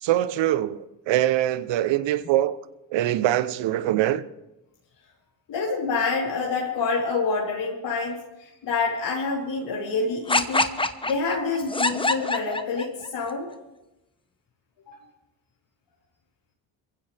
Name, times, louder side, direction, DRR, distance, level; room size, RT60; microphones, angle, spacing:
voice 1, 0.0-2.6 2.9-4.2, right 13 dB, 70° right, 0.9 m, -23 dB
voice 2, 5.5-10.7 11.0-13.5 14.9-15.0, left 4 dB, 70° left, 3.8 m, -27 dB
sound 1, 10.3-13.1, left 2 dB, 10° left, 1.0 m, -24 dB
22.5 x 15.5 x 3.5 m
supercardioid pair, 70°, 45 cm